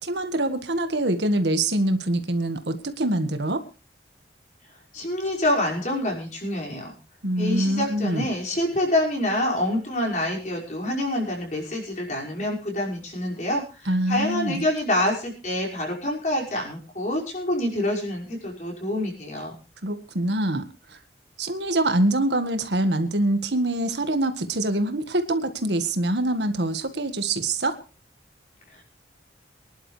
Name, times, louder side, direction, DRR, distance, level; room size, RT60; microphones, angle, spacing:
voice 1, 0.0-3.6 7.2-8.3 13.9-14.6 19.8-20.7 21.4-27.7, right 1 dB, 75° right, 8 dB, 1.7 m, -24 dB
voice 2, 4.9-7.0 7.4-19.5 28.7-28.8, left 1 dB, 40° left, -2 dB, 5.8 m, -27 dB
24.5 x 11.5 x 3.3 m, 0.33 s
head